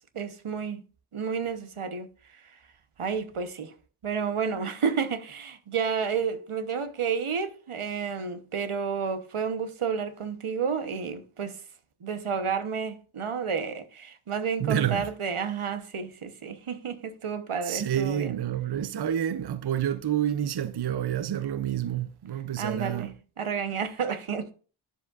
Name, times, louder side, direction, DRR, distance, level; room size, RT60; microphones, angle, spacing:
voice 1, 0.1-0.8 1.1-2.1 3.0-3.7 4.0-11.6 12.0-18.4 22.6-24.5, right 6 dB, 85° right, 0.9 m, -31 dB
voice 2, 14.6-15.1 17.6-23.1, right 10 dB, 55° right, 0.5 m, -28 dB
10.5 x 7.1 x 2.4 m
wide cardioid pair, 50°, 49 cm